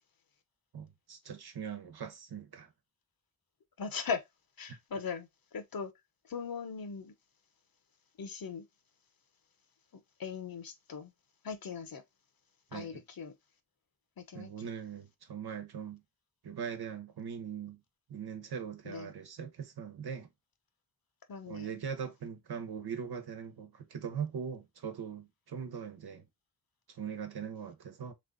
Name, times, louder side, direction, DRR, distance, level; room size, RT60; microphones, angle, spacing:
voice 1, 0.7-2.7 4.7-4.8 12.7-13.0 14.3-16.0 16.4-17.8 18.1-20.3 21.5-26.3 26.9-28.1, right 7 dB, 85° right, 1.1 m, -41 dB
voice 2, 3.8-4.2 4.6-5.9 6.2-7.1 8.2-8.6 9.9-11.1 11.4-12.0 12.7-13.3 14.2-14.7 18.8-19.1 21.3-21.8, left 6 dB, 65° left, 1.0 m, -39 dB
3.6 x 3.3 x 3.8 m
wide cardioid pair, 95°, 38 cm